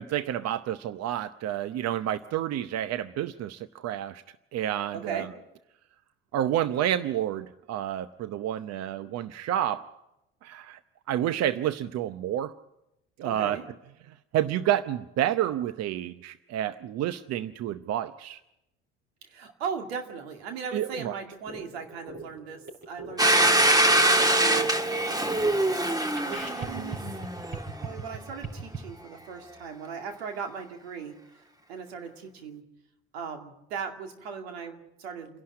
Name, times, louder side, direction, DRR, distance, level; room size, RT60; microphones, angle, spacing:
voice 1, 0.0-4.2 4.5-5.3 6.3-9.9 10.4-10.8 11.1-12.5 13.2-13.6 14.3-18.4 20.7-21.1, right 11 dB, 55° right, 13 dB, 0.8 m, -29 dB
voice 2, 4.9-5.3 13.2-13.6 19.2-23.4 24.0-24.7 25.4-27.0 27.8-32.6 33.1-35.4, right 6 dB, 85° right, 4 dB, 2.4 m, -38 dB
sound 1, 21.3-28.8, right 3 dB, 35° right, 5.8 m, -41 dB
Domestic sounds home sounds, 23.2-27.8, right 1 dB, 10° right, 1.6 m, -23 dB
28.5 x 11.5 x 8.7 m, 0.89 s
hypercardioid pair, 65°, 31 cm